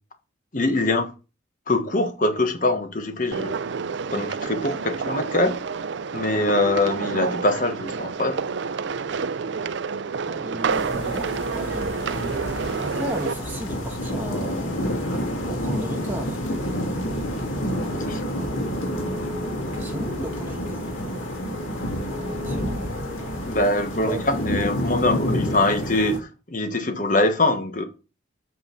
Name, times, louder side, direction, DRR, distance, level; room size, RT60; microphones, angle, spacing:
voice 1, 0.5-1.1 1.7-3.6 4.1-5.6 6.1-8.4 17.6-18.4 23.5-27.8, left 2 dB, 40° left, 1.4 m, -23 dB
sound 1, 3.3-13.3, right 5 dB, 65° right, 0.5 m, -29 dB
voice 2, 10.3-14.9 15.5-16.4 19.8-21.2 22.4-22.9 24.1-24.2 25.0-25.1, right 1 dB, 10° right, 1.3 m, -35 dB
sound 2, 10.7-26.2, equal, 90° left, 2.6 m, -29 dB
8.4 x 5.6 x 5.8 m
head